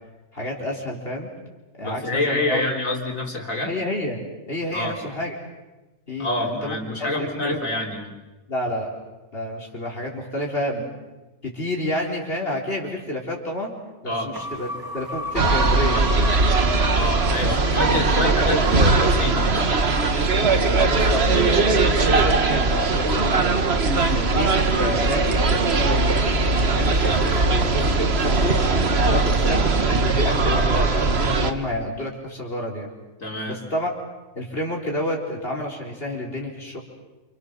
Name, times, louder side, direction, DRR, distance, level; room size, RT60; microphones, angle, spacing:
voice 1, 0.3-1.3 1.8-2.6 3.6-4.2 4.5-5.4 6.1-7.6 8.5-8.9 9.3-10.8 11.4-13.7 14.0-16.4 17.4-17.6 17.9-18.9 19.6-19.7 20.8-23.7 24.1-28.7 29.1-32.9 33.5-33.9 34.3-36.8, left 1 dB, 45° left, -2 dB, 4.3 m, -29 dB
voice 2, 1.8-3.7 4.7-5.0 6.2-8.1 14.1-14.3 16.9-19.7 29.0-29.3 33.2-33.6, left 2 dB, 90° left, 2 dB, 4.2 m, -27 dB
sound 1, 14.3-20.7, left 1 dB, 15° right, 1.3 m, -35 dB
sound 2, 15.4-31.5, right 3 dB, 55° right, 1.7 m, -20 dB
28.5 x 27.5 x 6.8 m, 1.1 s
omnidirectional pair, 1.3 m